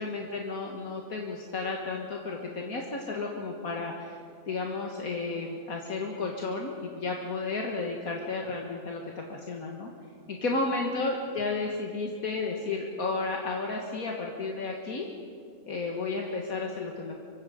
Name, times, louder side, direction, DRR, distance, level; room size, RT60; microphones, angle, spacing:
voice 1, 0.0-4.2 4.5-9.9 10.3-15.1 15.7-17.1, left 3 dB, 75° left, 0 dB, 2.1 m, -32 dB
26.0 x 23.5 x 5.1 m, 2.3 s
omnidirectional pair, 1.5 m